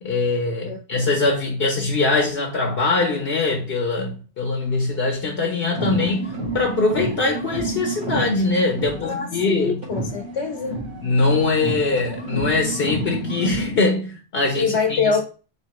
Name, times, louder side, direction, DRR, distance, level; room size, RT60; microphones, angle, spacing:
voice 1, 0.0-9.8 11.0-15.2, left 3 dB, 65° left, 1.0 m, -22 dB
sound 1, 5.6-9.5 9.8-13.8, right 1 dB, 45° right, 2.1 m, -30 dB
voice 2, 9.0-10.8 14.5-15.2, left 5 dB, 85° left, 1.2 m, -24 dB
4.2 x 2.9 x 2.9 m
omnidirectional pair, 1.1 m